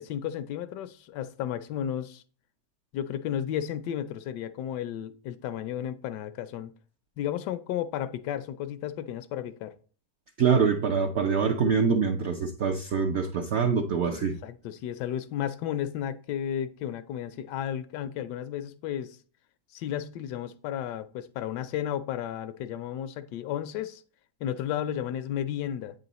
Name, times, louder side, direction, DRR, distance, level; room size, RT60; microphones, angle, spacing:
voice 1, 0.0-2.2 2.9-6.7 7.2-9.7 14.0-19.2 19.7-24.0 24.4-25.9, left 10 dB, 90° left, 1.2 m, -33 dB
voice 2, 10.4-14.4, right 6 dB, 70° right, 0.6 m, -25 dB
8.2 x 3.8 x 4.0 m
omnidirectional pair, 1.8 m